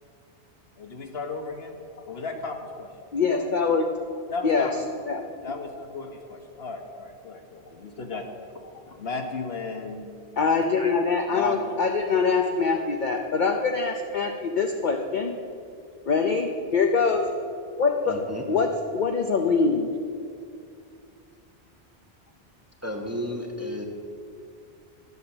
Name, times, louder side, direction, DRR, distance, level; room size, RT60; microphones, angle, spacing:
voice 1, 0.8-1.7 2.1-2.9 4.3-4.7 5.4-8.2 8.5-10.1 11.2-11.8 17.1-17.2, left 4 dB, 65° left, 4 dB, 1.4 m, -35 dB
voice 2, 3.1-3.9 4.4-4.7 5.1-5.2 10.4-15.3 16.1-17.2 17.8-18.2 18.5-20.0, left 4 dB, 50° left, 3 dB, 0.8 m, -24 dB
voice 3, 18.1-18.4 22.8-23.9, left 1 dB, 15° right, 2 dB, 1.0 m, -32 dB
11.5 x 8.0 x 7.2 m, 2.4 s
omnidirectional pair, 1.1 m